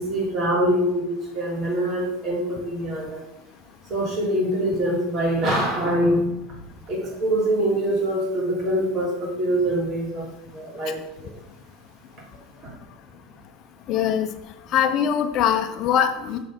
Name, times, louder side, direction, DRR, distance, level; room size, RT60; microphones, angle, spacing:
voice 1, 0.0-3.2 3.9-6.5 6.9-10.3 10.5-11.3 12.6-12.7, right 1 dB, 35° right, -2 dB, 3.2 m, -24 dB
voice 2, 13.9-14.3 14.7-16.4, left 9 dB, 40° left, 5 dB, 0.9 m, -22 dB
6.8 x 6.6 x 5.2 m, 0.87 s
supercardioid pair, 145°, 0 cm